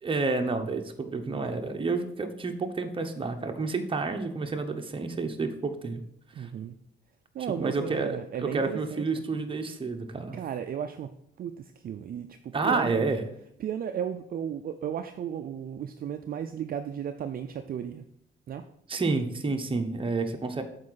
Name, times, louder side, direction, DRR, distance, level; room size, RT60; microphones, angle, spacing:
voice 1, 0.0-6.0 6.4-6.5 7.5-10.4 12.5-13.2 18.9-20.6, right 3 dB, 25° right, 5 dB, 1.0 m, -29 dB
voice 2, 6.3-6.8 7.3-9.0 10.3-11.1 11.4-13.1 13.6-18.1 18.5-18.6, right 9 dB, 50° right, 8 dB, 0.4 m, -34 dB
7.4 x 4.7 x 4.1 m, 0.72 s
cardioid pair, 90°, 20 cm